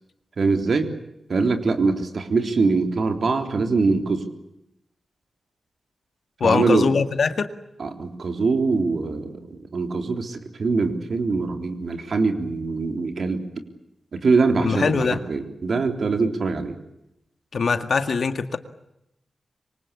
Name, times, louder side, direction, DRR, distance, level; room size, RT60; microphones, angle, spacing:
voice 1, 0.4-0.9 1.3-4.2 6.4-6.9 7.8-9.4 9.7-13.4 14.1-16.7, right 4 dB, 55° right, 6 dB, 3.6 m, -23 dB
voice 2, 6.4-7.5 14.6-15.2 17.5-18.6, left 5 dB, 60° left, 9 dB, 1.9 m, -22 dB
26.5 x 24.0 x 8.5 m, 0.85 s
wide cardioid pair, 160°, 0 cm